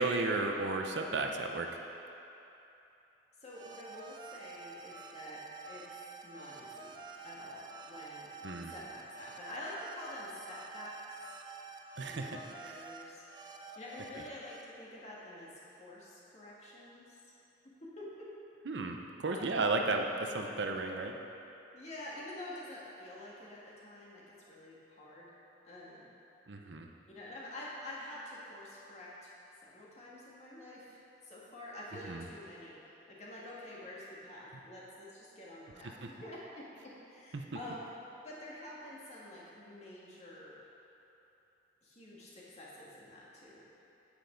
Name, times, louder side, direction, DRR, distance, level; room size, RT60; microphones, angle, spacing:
voice 1, 0.0-1.8 8.4-8.7 12.0-12.9 14.1-14.2 18.7-21.1 26.5-26.9 32.1-32.2 37.3-37.4, right 3 dB, 80° right, 3 dB, 0.7 m, -34 dB
voice 2, 3.4-6.9 7.2-8.3 8.6-11.2 12.0-13.2 13.8-15.5 15.8-17.2 17.8-18.0 19.3-19.6 21.7-25.3 25.6-26.1 27.1-29.3 29.6-37.8 38.2-40.6 41.8-43.6, left 1 dB, 40° left, -6 dB, 1.9 m, -48 dB
sound 1, 3.5-14.6, right 4 dB, 25° right, 0.5 m, -49 dB
9.4 x 8.9 x 3.9 m, 3.0 s
head